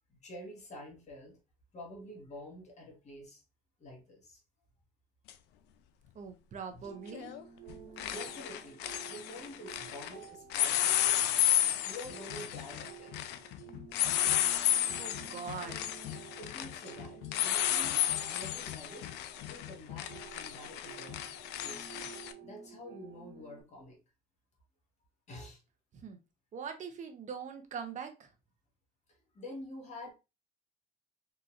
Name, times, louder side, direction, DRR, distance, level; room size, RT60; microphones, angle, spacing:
voice 1, 0.1-1.4 1.7-3.4 3.8-4.4 6.7-6.9 8.0-11.5 11.8-13.2 16.4-19.1 19.4-21.2 21.6-24.0 25.3-25.6 29.1-30.1, left 1 dB, 45° left, 1.5 m, -48 dB
sound 1, 5.3-5.4 7.1-7.4 7.7-10.1 10.5-22.3, left 12 dB, 85° left, 0.4 m, -32 dB
voice 2, 6.1-7.3 15.0-15.8 25.9-26.2 26.5-28.3, right 6 dB, 45° right, 0.7 m, -42 dB
sound 2, 6.8-23.6, right 8 dB, 70° right, 1.2 m, -52 dB
3.8 x 2.8 x 2.4 m
cardioid pair, 110°, 17 cm